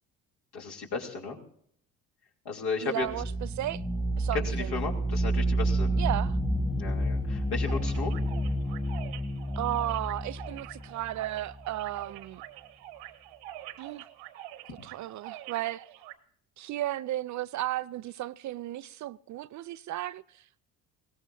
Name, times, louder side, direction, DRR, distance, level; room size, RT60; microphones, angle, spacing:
voice 1, 0.5-1.4 2.4-3.1 4.3-5.9 6.8-8.1, left 4 dB, 65° left, 3.1 m, -34 dB
voice 2, 2.8-3.8 4.2-4.8 6.0-6.4 9.5-12.4 13.8-14.1 14.8-15.9 16.6-20.6, right 14 dB, 45° right, 0.5 m, -34 dB
sound 1, 3.0-11.7, right 1 dB, 10° left, 1.6 m, -30 dB
sound 2, 7.6-16.1, right 14 dB, 75° right, 1.3 m, -46 dB
21.0 x 17.0 x 2.6 m
hypercardioid pair, 60°, 42 cm